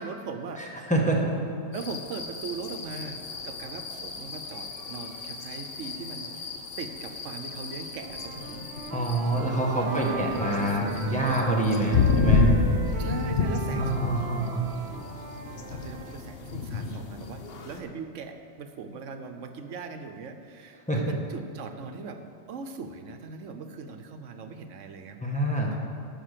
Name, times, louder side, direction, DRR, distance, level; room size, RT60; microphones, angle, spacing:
voice 1, 0.0-0.6 1.7-6.5 6.8-8.7 9.8-11.4 13.0-13.9 15.7-22.2 22.5-25.4, right 4 dB, 80° right, 7 dB, 1.1 m, -39 dB
voice 2, 0.6-1.3 8.9-12.5 13.7-14.6 20.9-21.0 25.2-25.7, right 1 dB, 5° left, -2 dB, 1.4 m, -26 dB
sound 1, 1.7-17.8, left 4 dB, 55° left, 1.0 m, -30 dB
Wind instrument woodwind instrument, 8.0-11.6 11.9-16.2, right 4 dB, 60° right, 1.1 m, -39 dB
13.0 x 5.6 x 6.7 m, 2.6 s
omnidirectional pair, 1.3 m